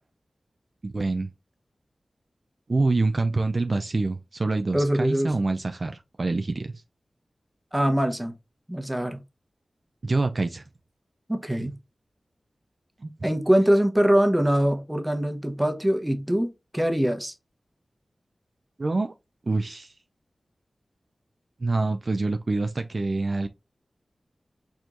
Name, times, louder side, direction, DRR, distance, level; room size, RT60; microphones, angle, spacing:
voice 1, 0.8-1.3 2.7-6.7 10.0-10.6 11.6-11.7 13.0-13.1 18.8-19.1 19.5-19.9 21.6-23.5, right 3 dB, 50° right, 0.4 m, -26 dB
voice 2, 4.7-5.3 7.7-8.3 8.7-9.2 11.3-11.8 13.2-17.3, equal, 10° right, 1.0 m, -23 dB
4.5 x 4.3 x 2.6 m
wide cardioid pair, 60°, 0 cm